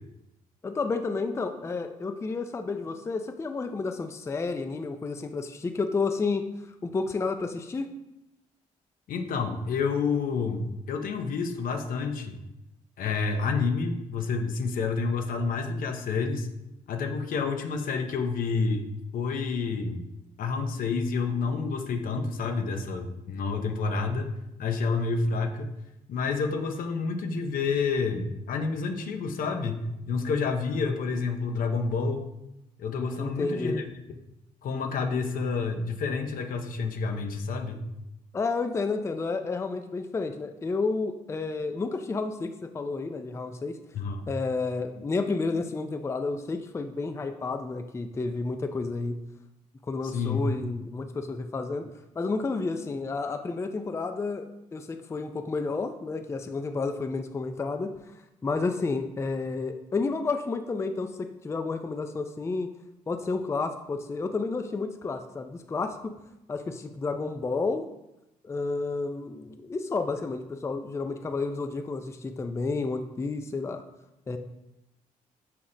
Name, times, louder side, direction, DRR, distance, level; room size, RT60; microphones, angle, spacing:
voice 1, 0.6-7.9 33.2-33.8 38.3-43.8 44.3-49.2 49.9-62.7 63.1-66.1 66.5-67.9 68.4-73.8 74.3-74.4, left 3 dB, 20° left, 7 dB, 0.3 m, -31 dB
voice 2, 9.1-12.4 13.0-16.5 16.9-18.9 19.1-20.1 20.4-24.3 24.6-25.7 26.1-32.3 32.8-33.8 34.6-37.8 43.9-44.3 50.0-50.5, left 4 dB, 70° left, 6 dB, 0.6 m, -29 dB
5.8 x 2.0 x 3.8 m, 0.91 s
supercardioid pair, 60°, 15 cm